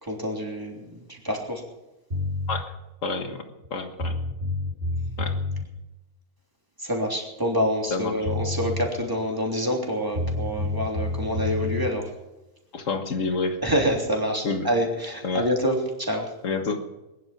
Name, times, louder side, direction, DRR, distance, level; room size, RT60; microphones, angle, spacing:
voice 1, 0.0-1.6 6.8-12.1 13.6-16.3, equal, 15° right, 0 dB, 3.3 m, -27 dB
sound 1, 2.1-2.6 3.6-3.7 4.0-5.7 7.9-8.0 8.2-8.9 10.1-11.9, left 2 dB, 40° right, 2.7 m, -28 dB
voice 2, 3.0-3.4 3.7-4.1 5.2-5.4 7.9-8.3 12.7-13.6 14.4-14.7 15.2-15.5 16.4-16.9, left 3 dB, 65° left, 6 dB, 1.9 m, -28 dB
21.0 x 11.0 x 6.1 m, 1.0 s
omnidirectional pair, 1.4 m